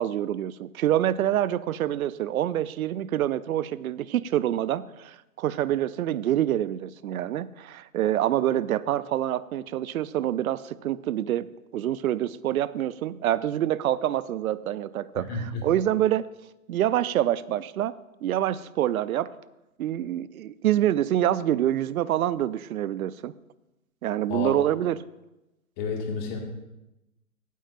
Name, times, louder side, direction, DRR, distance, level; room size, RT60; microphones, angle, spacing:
voice 1, 0.0-16.3 16.7-19.3 19.8-23.3 24.0-25.0, right 12 dB, 70° right, 18 dB, 0.5 m, -26 dB
voice 2, 15.3-15.6 24.3-24.5 25.8-26.4, left 5 dB, 30° left, 1 dB, 2.0 m, -30 dB
16.0 x 9.3 x 2.5 m, 0.96 s
hypercardioid pair, 140°, 45 cm